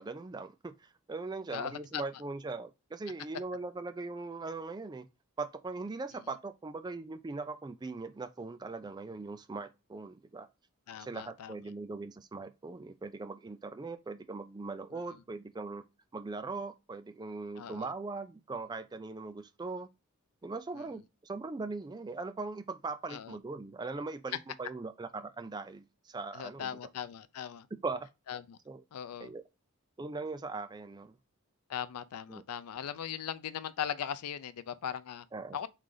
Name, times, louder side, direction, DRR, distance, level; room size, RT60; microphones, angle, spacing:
voice 1, 0.0-5.1 5.4-10.5 11.0-15.8 16.1-19.9 20.4-26.7 27.8-28.1 28.7-28.8 29.2-29.4 30.0-31.2 32.3-32.4 35.3-35.6, right 3 dB, 20° right, 0.3 m, -40 dB
voice 2, 1.5-2.0 10.9-11.6 14.9-15.0 17.6-17.9 20.7-21.0 23.1-23.4 26.3-27.7 28.3-28.6 28.9-29.3 31.7-35.3 35.5-35.7, left 9 dB, 85° left, 0.4 m, -39 dB
3.8 x 3.2 x 3.8 m
head